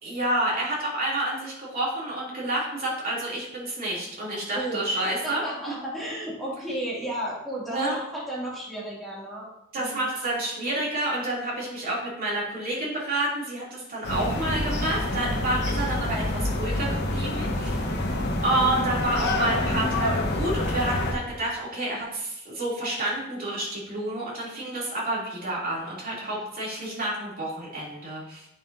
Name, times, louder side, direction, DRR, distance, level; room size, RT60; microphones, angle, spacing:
voice 1, 0.0-5.4 5.7-5.8 7.7-8.0 9.7-17.8 18.4-28.5, right 1 dB, 45° right, -6 dB, 3.1 m, -29 dB
voice 2, 5.0-9.5 9.8-10.1 26.2-26.4, right 1 dB, ahead, -7 dB, 2.7 m, -33 dB
sound 1, 14.0-21.1, left 1 dB, 55° left, 1.1 m, -27 dB
8.8 x 7.1 x 2.8 m, 0.80 s
head